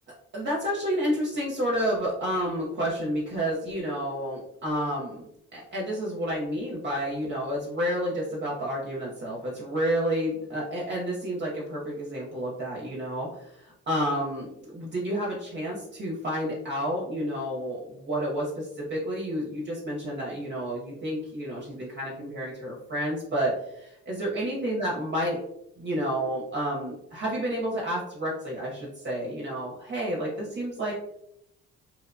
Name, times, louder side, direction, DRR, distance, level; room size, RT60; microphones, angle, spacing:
voice 1, 0.3-25.4 25.8-30.9, equal, 35° right, -4 dB, 0.7 m, -30 dB
2.8 x 2.0 x 2.5 m, 0.80 s
cardioid pair, 90°, 30 cm